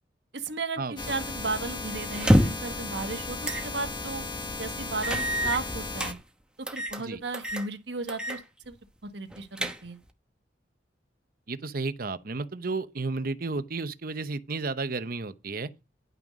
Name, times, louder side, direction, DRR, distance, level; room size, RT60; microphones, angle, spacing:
voice 1, 0.3-4.2 4.6-6.2 6.6-8.8 9.0-10.0, right 3 dB, 75° right, 1.4 m, -35 dB
sound 1, 1.0-6.1, left 3 dB, 25° left, 1.3 m, -36 dB
sound 2, 2.1-2.7 3.4-3.7 4.1-4.2 5.0-6.1 6.7-7.0 7.3-7.7 8.1-8.4 8.7-8.8 9.3-10.1, equal, 5° right, 1.0 m, -26 dB
voice 2, 11.5-15.7, right 3 dB, 55° right, 0.8 m, -32 dB
10.5 x 6.1 x 5.2 m
head